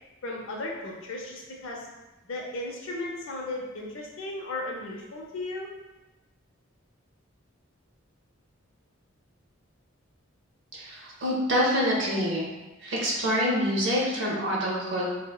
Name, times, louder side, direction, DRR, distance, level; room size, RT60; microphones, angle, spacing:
voice 1, 0.2-1.9 2.3-5.7, left 2 dB, 70° left, -1 dB, 0.6 m, -35 dB
voice 2, 10.7-12.5 12.8-15.1, equal, 65° right, -4 dB, 0.5 m, -26 dB
3.4 x 2.0 x 2.2 m, 1.1 s
head